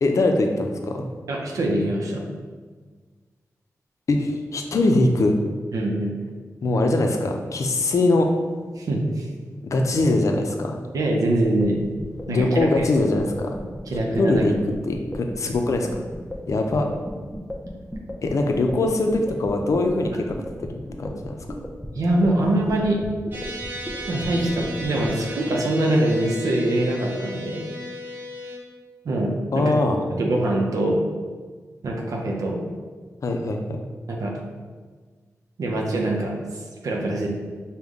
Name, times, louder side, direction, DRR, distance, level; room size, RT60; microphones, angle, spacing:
voice 1, 0.0-1.1 4.1-5.4 6.6-8.3 9.6-10.8 12.3-13.5 14.2-14.5 14.9-15.9 16.5-16.9 18.2-20.2 21.0-21.3 29.5-30.0 33.2-33.8, left 2 dB, 65° left, 3 dB, 0.5 m, -22 dB
voice 2, 1.3-2.2 5.7-6.2 8.8-9.3 10.9-11.8 12.3-12.9 13.9-14.4 21.9-23.0 24.1-27.6 29.0-29.7 30.1-31.1 31.8-32.6 34.1-34.4 35.6-37.3, right 1 dB, 85° right, -1 dB, 0.6 m, -23 dB
sound 1, 11.6-25.2, equal, 10° left, 0.6 m, -34 dB
sound 2, 23.3-28.6, equal, 35° right, 0.9 m, -35 dB
5.2 x 2.2 x 3.5 m, 1.5 s
wide cardioid pair, 80°, 6 cm